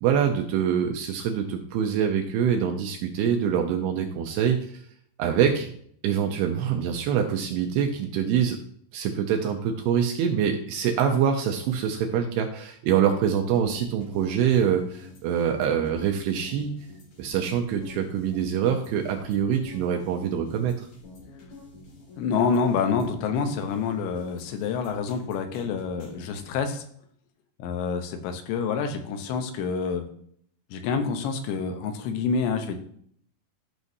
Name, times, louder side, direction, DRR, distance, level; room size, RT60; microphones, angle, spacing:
voice 1, 0.0-4.8 5.2-5.7 6.0-8.6 8.9-16.7 17.2-20.9, right 8 dB, 80° right, 3 dB, 2.4 m, -25 dB
sound 1, 13.5-26.5, left 3 dB, 45° left, 3.0 m, -47 dB
voice 2, 22.2-26.8 27.6-30.1 30.7-32.8, left 5 dB, 90° left, 6 dB, 3.2 m, -27 dB
12.5 x 6.2 x 2.7 m, 0.64 s
omnidirectional pair, 5.0 m